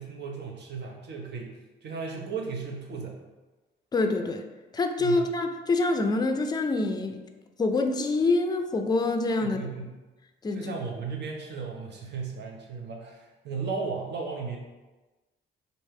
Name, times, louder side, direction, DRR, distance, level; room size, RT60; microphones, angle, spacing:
voice 1, 0.0-1.5 1.8-3.2 5.0-5.2 9.4-9.9 10.5-14.6, right 5 dB, 60° right, -1 dB, 0.9 m, -35 dB
voice 2, 3.9-4.4 4.7-7.2 7.6-9.6 10.4-10.7, left 3 dB, 20° left, 5 dB, 0.4 m, -26 dB
3.2 x 2.7 x 4.3 m, 1.2 s
cardioid pair, 90°, 20 cm